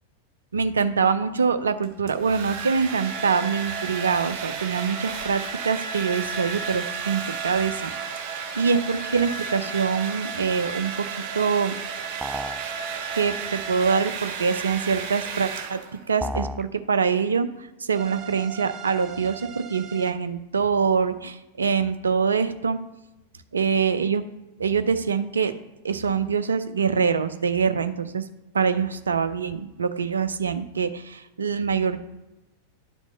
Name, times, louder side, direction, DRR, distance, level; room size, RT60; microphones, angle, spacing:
voice 1, 0.5-7.9 8.5-11.1 11.3-11.8 13.1-15.8 16.1-22.8 23.5-24.2 24.6-28.2 28.5-32.0, right 5 dB, 70° right, 11 dB, 0.6 m, -24 dB
Domestic sounds home sounds, 1.8-16.1, right 6 dB, 45° right, 1.3 m, -33 dB
sound 1, 3.0-14.1 17.9-20.1, right 6 dB, 30° right, 1.0 m, -39 dB
sound 2, 12.2-12.7 16.2-16.7, equal, 5° right, 0.3 m, -31 dB
11.0 x 6.2 x 4.0 m, 0.99 s
figure-of-eight pair, 90°, 0 cm